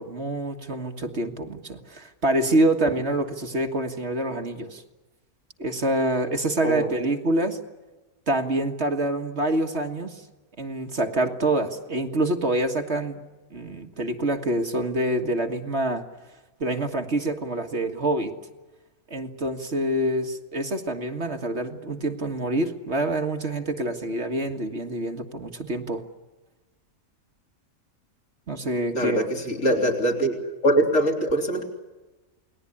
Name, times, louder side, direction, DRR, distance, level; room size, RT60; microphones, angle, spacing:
voice 1, 0.0-4.8 5.6-7.6 8.3-10.2 10.6-13.2 13.5-16.0 16.6-18.3 19.1-26.0 28.5-29.3, right 1 dB, 50° right, 4 dB, 2.0 m, -26 dB
voice 2, 28.9-31.6, right 1 dB, 60° left, 1 dB, 4.0 m, -23 dB
28.5 x 20.0 x 10.0 m, 1.2 s
omnidirectional pair, 1.5 m